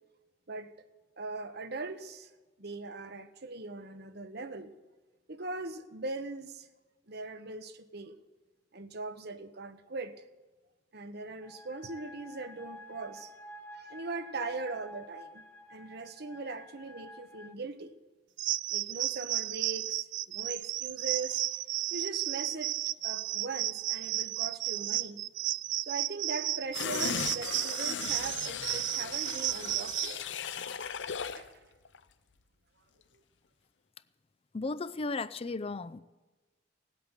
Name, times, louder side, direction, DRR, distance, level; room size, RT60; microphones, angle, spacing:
voice 1, 0.5-0.9 1.2-2.3 2.6-4.7 5.3-6.7 7.1-8.2 8.7-10.2 10.9-13.3 13.7-15.4 15.7-17.9 18.7-21.6 21.9-22.7 23.0-25.2 25.8-30.2 31.3-31.7, right 3 dB, 60° right, 1.0 m, -40 dB
sound 1, 11.4-17.5, left 1 dB, 15° left, 1.4 m, -50 dB
sound 2, 18.4-30.1, right 15 dB, 85° right, 0.5 m, -33 dB
sound 3, 26.7-31.5 31.8-32.0, left 7 dB, 80° left, 0.7 m, -37 dB
voice 2, 34.5-36.0, left 3 dB, 30° left, 0.5 m, -35 dB
17.5 x 8.4 x 9.8 m
head